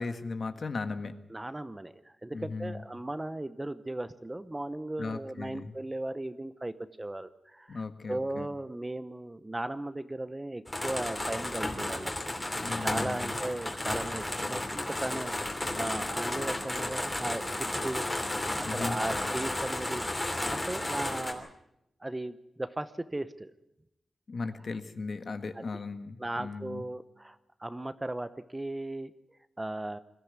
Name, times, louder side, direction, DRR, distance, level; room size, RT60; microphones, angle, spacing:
voice 1, 0.0-1.1 2.3-2.8 5.0-5.7 7.7-8.5 12.6-13.4 18.6-19.0 24.3-26.8, left 4 dB, 50° left, 9 dB, 1.5 m, -37 dB
voice 2, 1.3-7.8 8.1-12.1 12.8-18.3 18.6-21.5 22.0-23.5 26.2-29.1 29.6-30.0, right 1 dB, 15° right, 13 dB, 0.8 m, -37 dB
sound 1, 10.7-21.3, left 1 dB, 15° left, 3.0 m, -33 dB
22.0 x 14.0 x 9.5 m, 0.84 s
wide cardioid pair, 120°, 0 cm